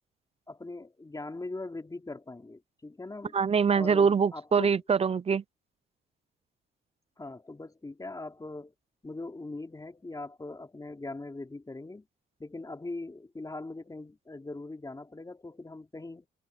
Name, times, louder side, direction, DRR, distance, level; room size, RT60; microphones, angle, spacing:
voice 1, 0.5-3.4 3.7-4.8 7.2-8.7 9.0-12.0 12.4-16.3, left 2 dB, 20° left, 3.4 m, -41 dB
voice 2, 3.3-5.4, right 6 dB, 30° right, 0.6 m, -24 dB
cardioid pair, 90°, 20 cm